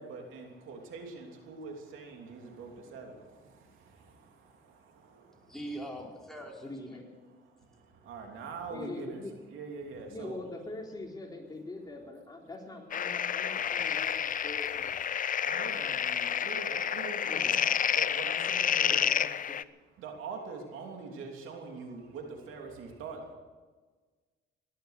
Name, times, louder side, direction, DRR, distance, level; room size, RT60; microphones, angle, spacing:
voice 1, 0.0-5.5 7.4-9.2 9.5-10.4 14.0-14.4 15.1-16.1 16.4-19.0 19.9-23.4, right 4 dB, 85° right, 2 dB, 3.1 m, -44 dB
voice 2, 5.5-7.0, right 1 dB, ahead, -2 dB, 4.9 m, -42 dB
voice 3, 6.6-7.1 8.7-9.3 10.1-15.2 15.7-16.5 17.3-17.6 18.8-19.6, left 2 dB, 20° left, 0 dB, 3.7 m, -44 dB
sound 1, 12.9-19.6, left 8 dB, 45° left, 0.5 m, -30 dB
18.5 x 11.5 x 6.6 m, 1.4 s
cardioid pair, 90°, 20 cm